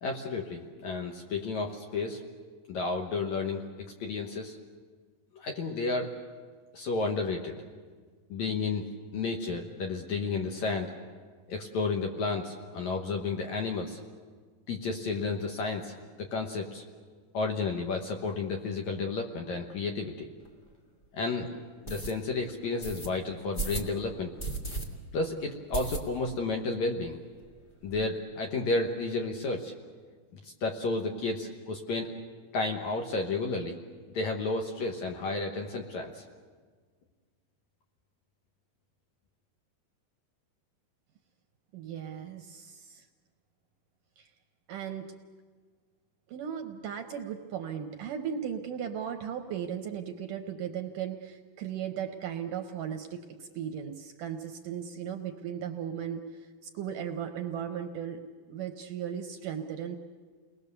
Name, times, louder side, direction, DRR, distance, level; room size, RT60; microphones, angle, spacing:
voice 1, 0.0-2.2 2.7-3.6 4.0-4.6 5.3-6.1 6.7-7.6 8.3-10.9 11.5-14.0 14.7-16.8 17.3-20.3 21.1-21.5 21.8-24.3 25.1-27.2 27.8-29.7 30.4-32.1 32.5-33.8 34.1-36.2, left 3 dB, 60° left, 2 dB, 2.1 m, -32 dB
sound 1, 20.4-20.5 21.0-21.1 21.8-22.1 22.8-23.1 23.5-23.9 24.4-24.8 25.2-25.3 25.7-26.4 26.7-26.8 27.1-27.2 27.4-28.0, right 2 dB, 45° left, 0.7 m, -35 dB
voice 2, 41.7-43.1 44.2-44.3 44.7-45.1 46.3-56.5 56.7-58.2 58.5-60.0, right 8 dB, 70° right, 5 dB, 2.1 m, -36 dB
29.5 x 20.5 x 6.9 m, 1.5 s
omnidirectional pair, 4.6 m